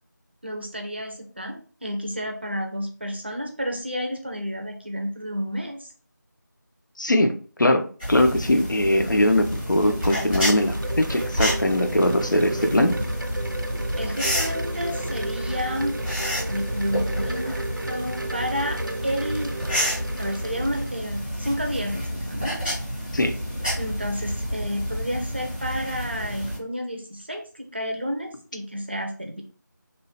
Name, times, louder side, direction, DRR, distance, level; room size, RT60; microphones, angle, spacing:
voice 1, 0.4-5.9 14.0-16.0 16.5-17.5 17.9-19.5 20.2-22.5 23.8-29.4, equal, 35° right, 3 dB, 0.5 m, -31 dB
voice 2, 7.0-7.8 8.1-13.0 23.1-23.3, left 1 dB, 75° left, 5 dB, 0.6 m, -21 dB
sound 1, 8.0-26.6, equal, 5° left, 0.6 m, -29 dB
Wind chime, 9.0-21.3, right 3 dB, 85° right, 0.5 m, -36 dB
2.9 x 2.3 x 3.0 m, 0.40 s
figure-of-eight pair, 170°, 10 cm